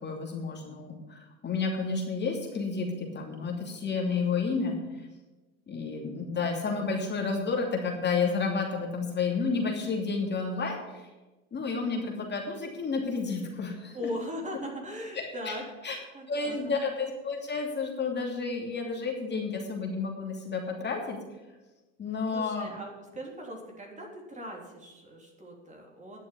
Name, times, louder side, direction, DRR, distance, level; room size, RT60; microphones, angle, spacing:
voice 1, 0.0-5.1 5.7-11.1 11.5-14.0 15.1-15.5 15.8-16.0 16.3-21.2 22.0-22.7, left 4 dB, 30° left, 0 dB, 2.8 m, -31 dB
voice 2, 13.9-16.8 22.3-26.2, equal, 20° right, 0 dB, 3.5 m, -39 dB
11.0 x 6.9 x 9.4 m, 1.1 s
hypercardioid pair, 90°, 35 cm